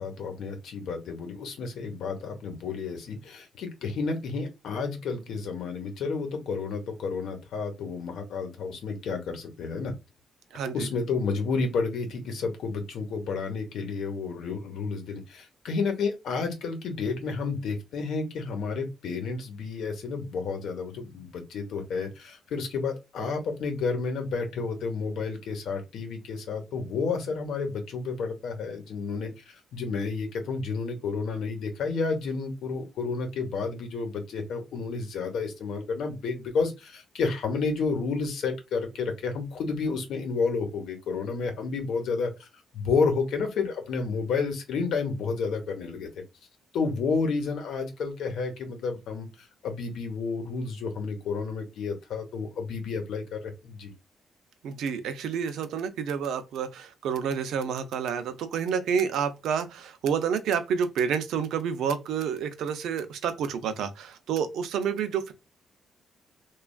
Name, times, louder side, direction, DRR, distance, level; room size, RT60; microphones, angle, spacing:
voice 1, 0.0-9.9 10.7-42.5 42.7-46.2 46.7-53.9, left 4 dB, 70° left, 0.9 m, -31 dB
voice 2, 10.5-10.9 54.6-65.3, right 7 dB, 90° right, 0.5 m, -29 dB
3.2 x 2.3 x 2.2 m
cardioid pair, 175°, 0 cm